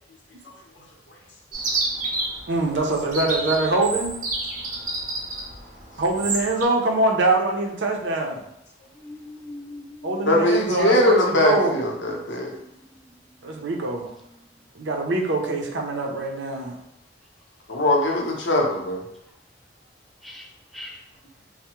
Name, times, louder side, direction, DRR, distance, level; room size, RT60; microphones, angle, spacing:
Chirp tweet, 1.5-6.7, right 2 dB, 45° right, 0.6 m, -29 dB
voice 1, 2.5-4.2 6.0-8.4 10.0-11.8 13.4-14.1 14.8-16.8, right 2 dB, 85° right, 1 dB, 0.5 m, -24 dB
voice 2, 9.0-10.3 12.2-12.9 20.2-20.4 20.7-21.0, left 1 dB, ahead, 0 dB, 0.3 m, -41 dB
voice 3, 10.3-12.6 17.7-19.0, left 1 dB, 90° left, 0 dB, 0.7 m, -21 dB
3.3 x 2.1 x 2.9 m, 0.78 s
head